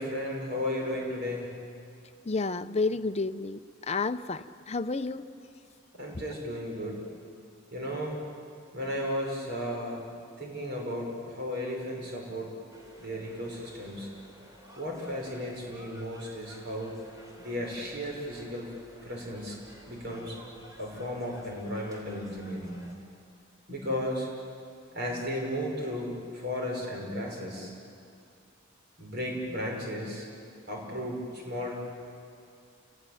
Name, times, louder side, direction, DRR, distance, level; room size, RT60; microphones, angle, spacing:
voice 1, 0.0-1.5 5.9-7.1 7.7-8.2 8.7-10.0 10.4-12.6 13.0-14.1 14.8-17.0 17.4-18.7 19.0-19.6 19.9-20.4 20.8-22.8 23.7-24.3 24.9-27.7 29.0-30.3 30.7-31.7, equal, 55° right, 0 dB, 6.1 m, -34 dB
voice 2, 2.3-3.6 3.9-5.3, left 3 dB, 30° left, 10 dB, 0.6 m, -30 dB
sound 1, 12.7-22.9, equal, 15° right, 3.6 m, -53 dB
29.5 x 18.5 x 9.3 m, 2.4 s
head